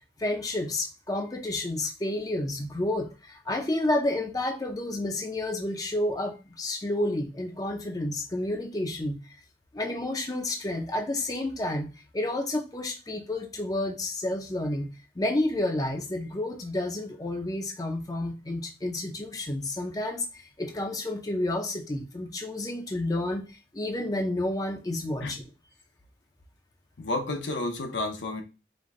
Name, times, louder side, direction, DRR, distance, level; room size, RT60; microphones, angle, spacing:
voice 1, 0.2-9.2 9.7-14.9 15.2-25.4, left 1 dB, 20° left, 0.5 m, -30 dB
voice 2, 27.0-28.4, left 2 dB, 75° left, 0.8 m, -31 dB
5.2 x 2.2 x 3.6 m
head